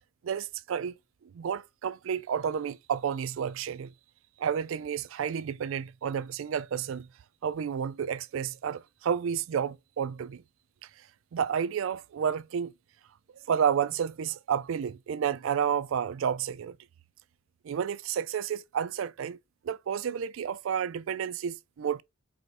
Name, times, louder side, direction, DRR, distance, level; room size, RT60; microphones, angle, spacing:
voice 1, 0.2-1.0 1.3-3.9 4.4-7.1 7.4-10.4 11.3-12.7 13.5-16.8 17.6-19.4 19.6-22.0, right 8 dB, 75° right, 0.4 m, -31 dB
4.8 x 3.3 x 2.6 m
head